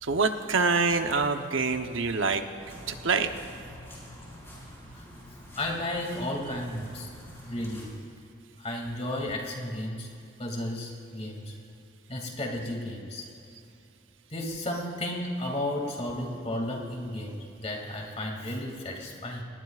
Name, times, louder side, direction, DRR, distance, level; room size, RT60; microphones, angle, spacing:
voice 1, 0.0-2.4 2.9-3.3, right 4 dB, 75° right, 6 dB, 0.9 m, -25 dB
sound 1, 2.6-7.8, equal, 15° left, 4.8 m, -47 dB
voice 2, 5.6-7.1 7.4-7.9 8.6-10.1 10.4-11.5 12.1-13.2 14.3-19.4, left 1 dB, 30° left, 1 dB, 2.5 m, -33 dB
28.0 x 20.0 x 2.5 m, 2.7 s
head